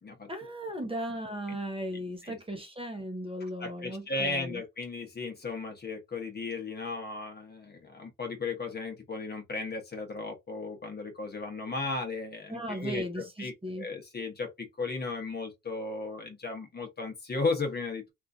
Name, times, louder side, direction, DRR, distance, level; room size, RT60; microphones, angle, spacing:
voice 1, 0.3-4.6 12.5-13.9, equal, 20° right, 0.8 m, -37 dB
voice 2, 3.4-18.1, left 3 dB, 35° left, 1.0 m, -35 dB
2.9 x 2.5 x 2.5 m
cardioid pair, 90°, 30 cm